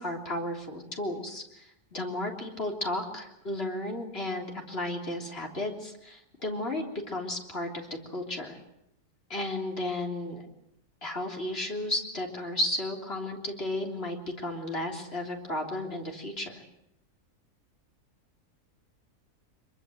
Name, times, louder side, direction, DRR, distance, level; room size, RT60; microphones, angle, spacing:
voice 1, 0.0-8.6 9.3-10.5 11.0-16.6, left 1 dB, 40° left, 1 dB, 3.7 m, -34 dB
25.5 x 23.0 x 7.9 m, 0.81 s
omnidirectional pair, 1.6 m